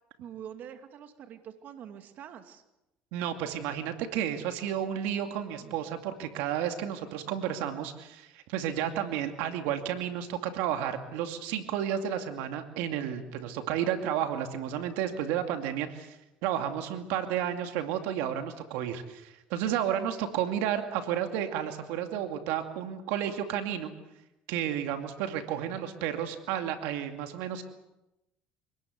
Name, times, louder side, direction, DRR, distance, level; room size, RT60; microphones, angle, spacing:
voice 1, 0.2-2.6 5.6-5.7, right 9 dB, 55° right, 7 dB, 2.4 m, -45 dB
voice 2, 3.1-23.9 24.5-27.6, right 10 dB, 80° right, 6 dB, 2.4 m, -32 dB
26.5 x 19.5 x 8.1 m, 0.93 s
supercardioid pair, 90°, 3 cm